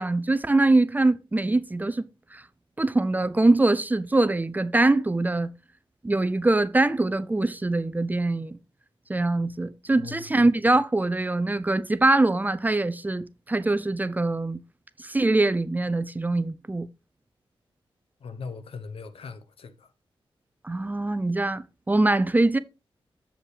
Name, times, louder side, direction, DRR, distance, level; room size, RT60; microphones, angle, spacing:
voice 1, 0.0-2.4 2.8-5.5 6.0-8.6 9.1-14.6 15.0-16.9 20.6-22.6, right 2 dB, 20° right, 0.5 m, -23 dB
voice 2, 10.0-10.3 18.2-19.9, left 5 dB, 80° left, 0.9 m, -40 dB
7.3 x 7.0 x 3.3 m
wide cardioid pair, 100°, 10 cm